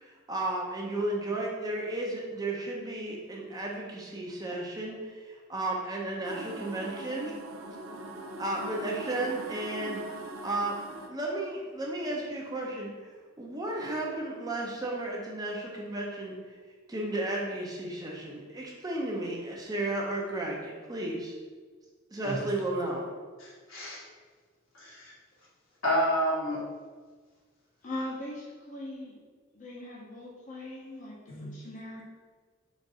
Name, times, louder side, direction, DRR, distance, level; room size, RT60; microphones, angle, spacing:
voice 1, 0.0-7.3 8.4-10.0 10.4-10.7 11.1-13.1 13.4-16.4 16.9-21.4 22.1-23.1, right 2 dB, 20° right, -2 dB, 0.6 m, -33 dB
voice 2, 6.1-6.9 7.2-7.4 27.8-29.2 29.5-32.0, left 1 dB, 40° left, -4 dB, 0.6 m, -41 dB
sound 1, 6.2-11.1, right 2 dB, 75° right, 0.5 m, -41 dB
voice 3, 23.4-24.0 24.7-25.1 25.8-26.6 31.3-31.4, equal, 80° left, -5 dB, 1.4 m, -29 dB
4.1 x 2.5 x 4.7 m, 1.5 s
head